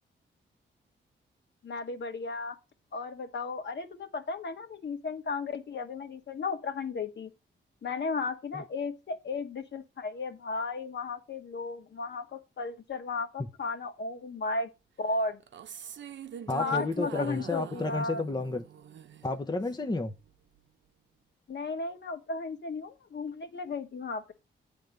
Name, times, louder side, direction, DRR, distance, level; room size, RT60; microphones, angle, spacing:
voice 1, 1.6-2.6 2.9-7.3 7.8-14.7 15.0-15.4 16.6-18.2 21.5-24.3, left 3 dB, 60° left, 1.8 m, -35 dB
sound 1, 15.4-19.9, right 8 dB, 65° right, 0.8 m, -44 dB
voice 2, 16.5-18.6 19.2-20.1, left 3 dB, 20° left, 0.9 m, -31 dB
8.8 x 3.6 x 6.6 m
cardioid pair, 55°, 20 cm